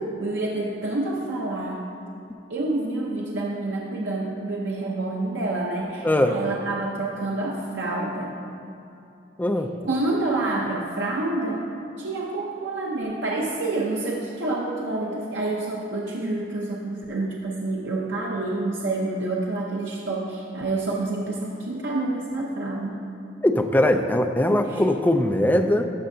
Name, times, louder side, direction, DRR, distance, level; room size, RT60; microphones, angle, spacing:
voice 1, 0.2-1.9 2.5-8.3 9.8-11.7 12.0-23.0 24.5-24.8, right 2 dB, 90° right, -3 dB, 0.7 m, -28 dB
voice 2, 6.0-6.4 9.4-9.7 23.4-25.9, left 1 dB, 10° left, 5 dB, 0.3 m, -21 dB
12.0 x 6.5 x 2.7 m, 2.8 s
head